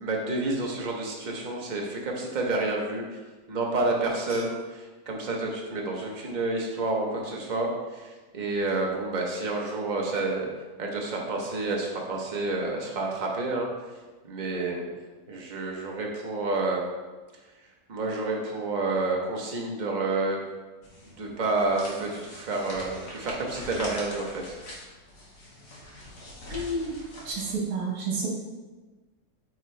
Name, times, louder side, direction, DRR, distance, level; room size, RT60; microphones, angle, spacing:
voice 1, 0.0-3.1 3.5-10.5 10.8-13.7 14.2-14.9 15.3-16.9 17.9-20.4 21.2-24.4, right 2 dB, 35° right, -1 dB, 0.9 m, -29 dB
sound 1, 20.8-27.6, left 1 dB, 85° left, 1.8 m, -43 dB
voice 2, 26.5-26.9 27.3-28.3, right 3 dB, 70° right, -3 dB, 1.8 m, -30 dB
8.5 x 3.6 x 3.2 m, 1.3 s
omnidirectional pair, 1.6 m